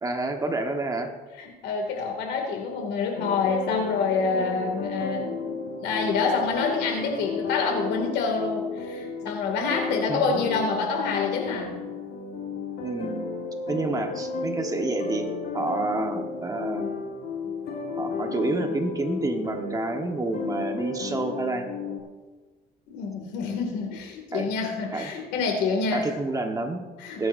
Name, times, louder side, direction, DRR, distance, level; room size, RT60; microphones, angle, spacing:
voice 1, 0.0-1.1 10.1-10.4 12.8-13.2 13.7-15.3 15.5-16.9 18.0-21.7 24.3-24.5 24.9-25.1 25.9-26.8 27.2-27.3, right 2 dB, 20° right, 4 dB, 1.4 m, -29 dB
voice 2, 1.4-11.8 18.2-18.7 22.9-26.1 27.0-27.3, left 4 dB, 85° left, 2 dB, 2.5 m, -27 dB
sound 1, 3.2-22.0, left 4 dB, 70° left, 1.8 m, -33 dB
21.0 x 10.0 x 2.7 m, 1.3 s
cardioid pair, 110°, 17 cm